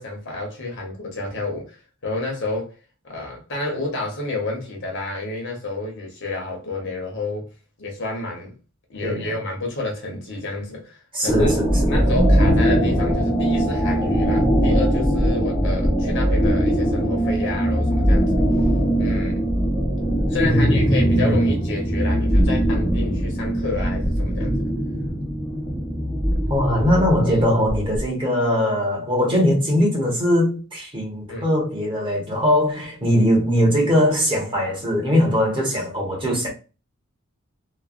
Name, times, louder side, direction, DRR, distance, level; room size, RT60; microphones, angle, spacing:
voice 1, 0.0-2.7 3.0-7.5 7.8-8.6 8.9-18.4 19.0-19.5 20.3-24.7 31.3-31.4, left 2 dB, 55° left, 1.0 m, -30 dB
voice 2, 11.1-11.7 20.4-21.5 26.5-36.5, equal, 25° right, 1.1 m, -20 dB
sound 1, 11.3-28.0, equal, 5° left, 0.6 m, -21 dB
3.1 x 2.2 x 2.4 m
head